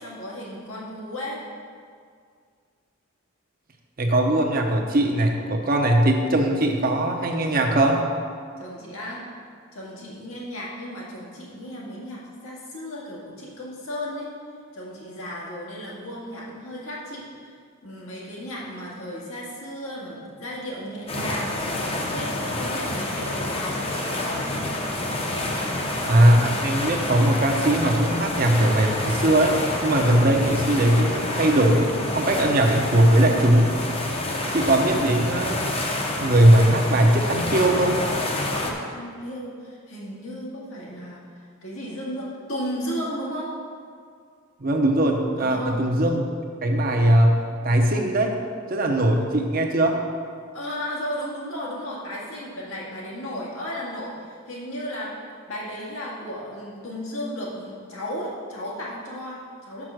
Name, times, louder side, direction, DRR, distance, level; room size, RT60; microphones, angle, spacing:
voice 1, 0.0-1.4 8.6-9.2 9.7-14.3 14.7-17.2 17.8-24.6 38.6-41.2 41.6-43.5 45.4-45.9 50.5-55.1 55.5-59.8, equal, 85° left, -5 dB, 1.9 m, -34 dB
voice 2, 4.0-8.0 26.0-33.7 34.5-35.6 36.2-38.0 44.6-46.3 46.6-48.3 48.7-50.0, right 1 dB, 45° right, 2 dB, 0.7 m, -20 dB
sound 1, 21.1-38.7, left 1 dB, 25° left, 0.7 m, -28 dB
6.0 x 5.6 x 6.3 m, 2.1 s
head